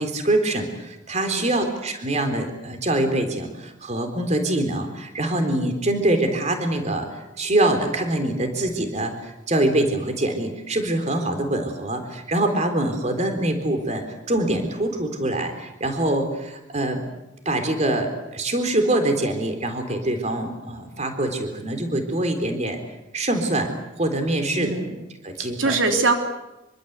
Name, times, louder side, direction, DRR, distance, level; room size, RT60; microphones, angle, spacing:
voice 1, 0.0-17.0 17.5-22.8 23.1-23.7 24.0-24.7 25.2-25.8, right 1 dB, 35° right, 6 dB, 3.8 m, -24 dB
voice 2, 24.6-25.0 25.4-26.1, right 3 dB, 85° right, 4 dB, 3.5 m, -23 dB
26.0 x 24.5 x 8.2 m, 0.97 s
head